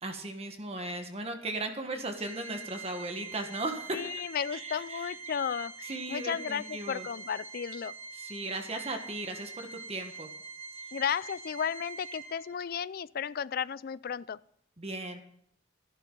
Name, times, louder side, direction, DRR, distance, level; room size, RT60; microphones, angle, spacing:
voice 1, 0.0-4.0 4.5-5.1 5.9-7.1 8.2-10.3 10.9-11.0 14.8-15.2, right 2 dB, 35° right, 5 dB, 1.4 m, -37 dB
Organ, 2.1-12.7, right 4 dB, 15° left, 5.5 m, -45 dB
voice 2, 3.9-7.9 10.9-14.4, left 7 dB, 50° left, 18 dB, 0.4 m, -34 dB
14.0 x 11.5 x 3.9 m, 0.69 s
head